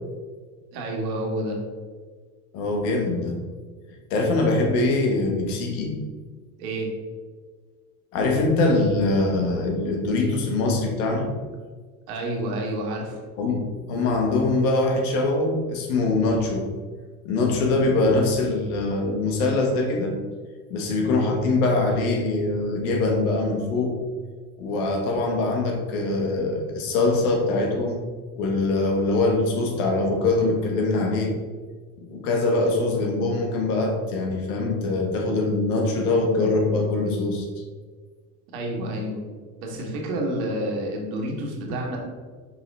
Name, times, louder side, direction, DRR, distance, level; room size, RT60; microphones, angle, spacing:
voice 1, 0.7-1.6 6.6-6.9 12.1-13.2 38.5-39.2 39.6-42.0, right 1 dB, 65° right, 0 dB, 1.8 m, -29 dB
voice 2, 2.5-3.4 4.1-6.0 8.1-11.3 13.4-16.7 17.2-20.1 20.7-24.0 24.6-28.0 28.3-31.4 32.0-37.4, left 2 dB, 70° left, 2 dB, 1.6 m, -23 dB
5.6 x 5.3 x 3.4 m, 1.5 s
hypercardioid pair, 85°, 46 cm